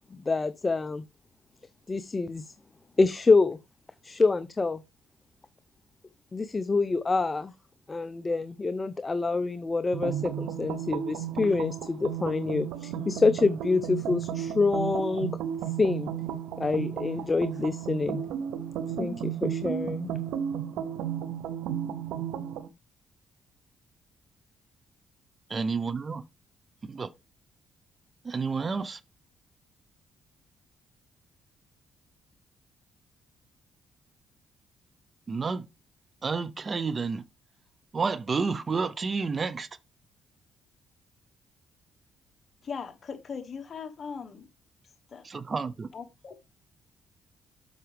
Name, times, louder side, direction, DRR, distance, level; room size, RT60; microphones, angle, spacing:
voice 1, 0.1-1.0 1.9-2.5 3.0-3.6 4.0-4.8 6.3-7.5 7.9-15.4 15.8-16.1 16.6-18.3 19.0-20.1, left 3 dB, 25° left, 0.5 m, -26 dB
sound 1, 9.9-22.7, right 9 dB, 90° right, 0.7 m, -33 dB
voice 2, 25.5-26.2 26.8-27.1 28.2-29.0 35.3-35.7 36.2-37.2 37.9-39.7 45.2-45.9, right 4 dB, 35° right, 0.6 m, -30 dB
voice 3, 42.6-44.5 45.1-45.3 45.9-46.4, left 6 dB, 45° left, 1.3 m, -39 dB
7.9 x 5.9 x 3.3 m
cardioid pair, 90°, 0 cm